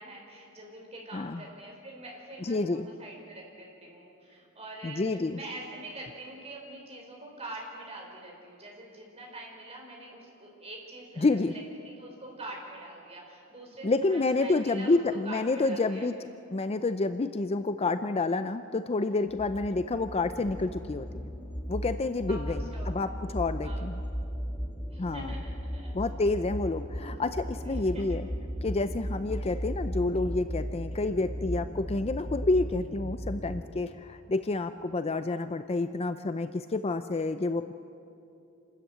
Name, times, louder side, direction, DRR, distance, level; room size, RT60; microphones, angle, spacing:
voice 1, 0.0-15.0 15.2-16.1 22.3-22.9 23.6-23.8 24.9-25.9 26.9-27.2 27.6-28.2, right 1 dB, 30° right, -1 dB, 4.9 m, -45 dB
voice 2, 2.4-2.9 4.8-5.4 11.2-11.5 13.8-16.1 16.5-21.3 21.7-24.0 25.0-25.4 25.9-28.2 28.6-37.7, left 3 dB, 25° left, 11 dB, 0.5 m, -29 dB
sound 1, 19.3-33.7, equal, 10° left, 1.5 m, -36 dB
27.5 x 13.5 x 9.2 m, 2.7 s
head